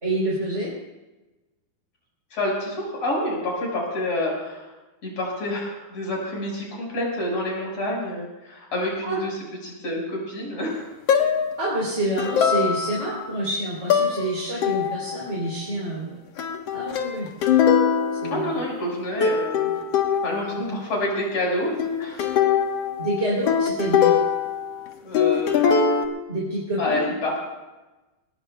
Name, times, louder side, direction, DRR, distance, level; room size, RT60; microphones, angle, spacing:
voice 1, 0.0-0.7 9.0-9.2 11.6-16.1 16.7-17.3 18.2-18.5 20.7-20.8 23.0-24.1 26.3-27.1, right 1 dB, 20° right, -5 dB, 3.4 m, -27 dB
voice 2, 2.3-4.7 5.0-10.9 18.3-19.7 20.2-22.3 25.0-25.6 26.8-27.5, left 1 dB, 40° left, -2 dB, 6.4 m, -28 dB
sound 1, 11.1-11.6 12.2-13.2 13.9-14.3 14.6-15.2 16.4-18.9 19.2-20.6 21.8-24.9 25.1-26.0, left 7 dB, 65° left, 1.6 m, -22 dB
22.5 x 18.5 x 2.3 m, 1.1 s
omnidirectional pair, 4.4 m